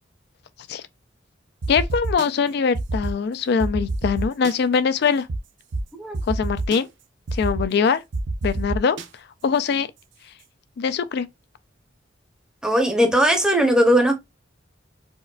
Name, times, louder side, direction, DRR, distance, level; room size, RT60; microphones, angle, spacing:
sound 1, 1.6-2.3 2.7-3.1 3.6-4.5 5.3-5.4 5.7-5.8 6.1-6.8 7.3-7.7 8.1-9.0, right 2 dB, 70° right, 0.5 m, -26 dB
voice 1, 1.7-5.3 6.3-6.9 7.3-8.0 8.4-9.0 9.4-9.9 10.8-11.3, left 6 dB, 60° left, 0.4 m, -22 dB
voice 2, 12.6-14.1, equal, 5° right, 0.7 m, -18 dB
4.4 x 2.2 x 2.4 m
head